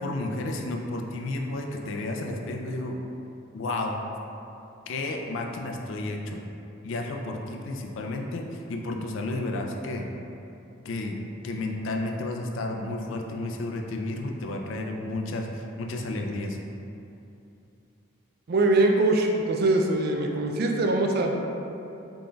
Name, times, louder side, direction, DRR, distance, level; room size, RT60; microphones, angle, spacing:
voice 1, 0.0-3.0 3.5-4.0 4.9-6.4 6.8-10.1 10.8-11.2 11.4-16.6, left 2 dB, 65° left, 2 dB, 0.3 m, -32 dB
voice 2, 18.5-21.4, right 2 dB, 45° right, 2 dB, 0.3 m, -22 dB
3.8 x 3.7 x 2.3 m, 2.8 s
head